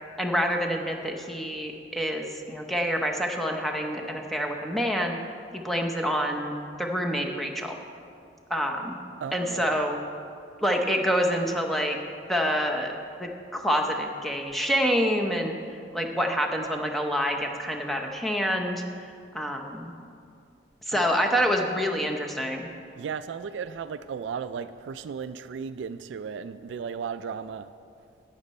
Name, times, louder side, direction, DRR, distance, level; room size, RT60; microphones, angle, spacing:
voice 1, 0.2-5.2 5.5-6.5 6.8-7.8 8.5-9.0 9.3-10.0 10.6-12.0 12.3-12.9 13.2-15.5 15.9-19.9 20.9-22.7, equal, ahead, 1 dB, 0.7 m, -27 dB
voice 2, 9.2-9.7 20.9-21.1 21.4-21.5 23.0-27.7, right 6 dB, 70° right, 13 dB, 0.3 m, -35 dB
12.0 x 9.0 x 4.2 m, 2.4 s
head